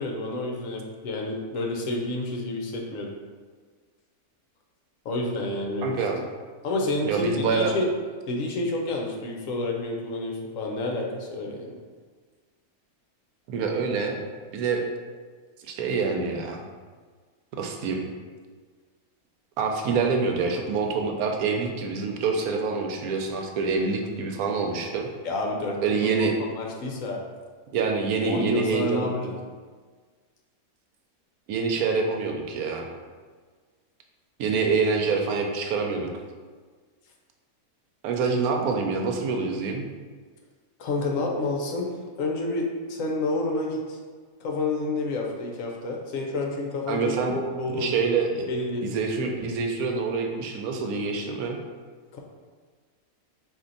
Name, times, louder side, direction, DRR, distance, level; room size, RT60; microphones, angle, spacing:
voice 1, 0.0-3.1 5.0-6.0 6.6-7.9 8.3-11.7 25.2-26.3 26.6-27.2 28.3-29.4 40.8-41.9 42.2-44.0 44.4-47.9 48.5-48.9 52.1-52.2, left 2 dB, 70° left, 0 dB, 1.0 m, -29 dB
voice 2, 5.8-6.2 7.0-7.8 13.5-14.2 14.5-14.8 15.6-16.6 17.5-18.0 19.6-25.1 25.8-26.4 27.7-29.1 31.5-32.9 34.4-36.1 38.0-39.9 46.9-47.4 47.7-48.5 48.8-51.6, right 4 dB, 85° right, 3 dB, 1.1 m, -26 dB
4.4 x 2.7 x 3.8 m, 1.5 s
omnidirectional pair, 1.5 m